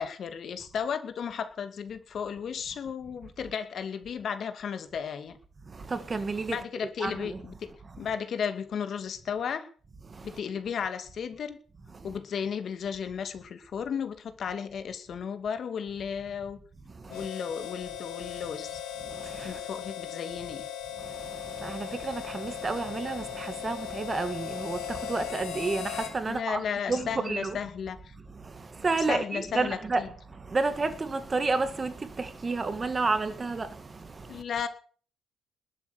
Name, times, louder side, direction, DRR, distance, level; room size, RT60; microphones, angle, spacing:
voice 1, 0.0-5.4 6.5-7.7 8.0-9.7 10.2-11.6 12.0-16.6 17.1-18.8 19.4-20.7 26.3-28.1 29.1-30.1 34.3-34.7, left 7 dB, 45° left, 2.4 m, -34 dB
voice 2, 5.7-6.6 7.0-7.4 7.8-7.9 10.1-10.4 11.9-12.1 16.9-17.3 19.0-19.6 21.0-27.6 28.3-34.4, right 3 dB, 20° right, 1.8 m, -31 dB
Harmonica, 17.1-26.2, left 10 dB, 75° left, 5.7 m, -38 dB
20.5 x 8.5 x 8.1 m
cardioid pair, 155°, 0 cm